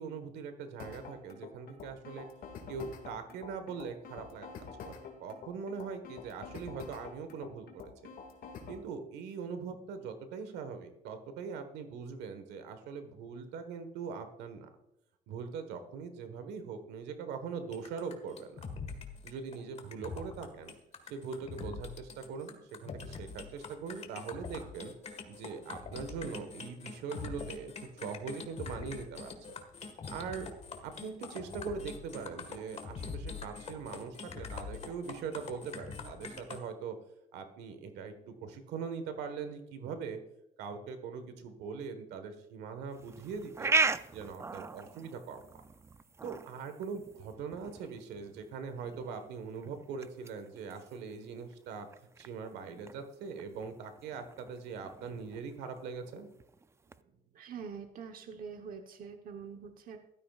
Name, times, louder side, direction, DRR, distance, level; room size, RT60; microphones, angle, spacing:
voice 1, 0.0-2.3 2.7-7.9 8.7-14.7 15.3-18.5 19.2-20.7 21.1-24.9 25.3-29.3 30.1-30.5 30.8-37.0 37.3-40.2 40.6-43.7 44.1-45.6 46.2-51.9 52.2-56.3, right 5 dB, 85° right, 8 dB, 1.4 m, -41 dB
sound 1, 0.8-8.8, left 5 dB, 60° left, 2.2 m, -47 dB
sound 2, 17.7-36.6, left 5 dB, 40° left, 1.7 m, -44 dB
sound 3, 42.9-57.0, right 4 dB, 15° right, 0.4 m, -39 dB
voice 2, 57.3-60.0, right 6 dB, 55° right, 5 dB, 1.1 m, -44 dB
15.0 x 12.5 x 2.4 m, 0.86 s
cardioid pair, 110°, 17 cm